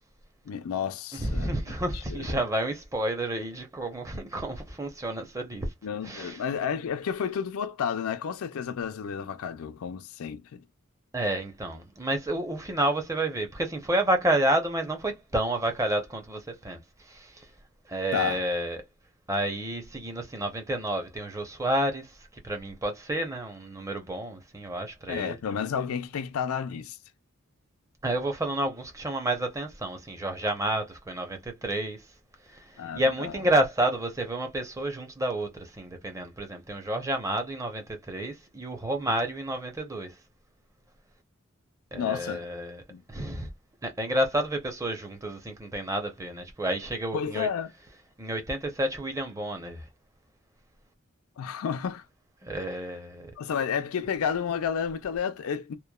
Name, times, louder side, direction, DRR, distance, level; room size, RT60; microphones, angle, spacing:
voice 1, 0.4-1.5 1.9-2.4 5.8-10.6 18.1-18.4 25.1-27.0 32.8-33.4 41.9-42.4 42.9-43.0 47.1-47.7 51.4-52.1 52.5-52.6 53.4-55.8, left 7 dB, 85° left, 0.4 m, -31 dB
voice 2, 1.2-5.7 6.0-6.4 11.1-17.5 17.9-18.8 19.3-25.4 28.0-32.0 32.5-40.2 41.9-42.8 43.1-43.5 43.8-47.5 48.2-49.9 52.4-53.3, right 1 dB, 15° right, 0.6 m, -30 dB
2.9 x 2.1 x 2.2 m
head